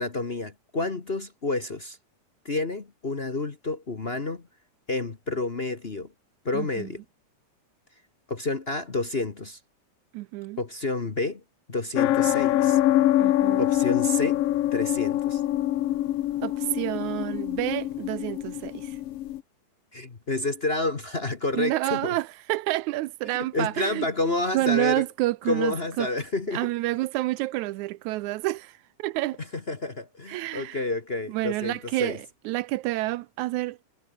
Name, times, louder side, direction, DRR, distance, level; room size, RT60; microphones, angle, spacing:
voice 1, 0.0-2.0 2.4-4.4 4.9-6.1 6.4-7.0 8.3-9.6 10.6-11.4 11.7-12.8 13.6-14.4 14.7-15.4 19.9-22.1 23.3-25.0 25.5-26.7 29.5-32.2, left 2 dB, 50° left, 0.7 m, -29 dB
voice 2, 6.5-6.9 10.1-10.6 13.2-13.6 16.4-19.0 21.5-24.1 24.5-26.1 26.5-29.4 30.3-30.8 31.3-33.8, right 18 dB, 80° right, 1.9 m, -29 dB
sound 1, 12.0-19.4, left 13 dB, 70° left, 1.5 m, -24 dB
omnidirectional pair, 3.7 m